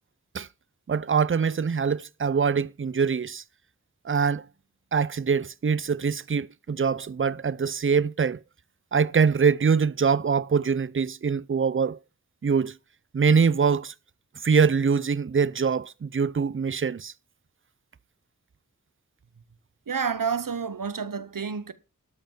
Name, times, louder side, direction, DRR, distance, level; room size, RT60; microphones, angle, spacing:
voice 1, 0.9-3.4 4.0-4.5 4.9-8.4 8.9-12.0 12.4-12.7 13.1-13.9 14.4-17.1, right 6 dB, 40° right, 0.5 m, -23 dB
voice 2, 19.9-21.7, right 6 dB, 85° right, 1.0 m, -29 dB
12.5 x 5.5 x 7.2 m
wide cardioid pair, 40°, 32 cm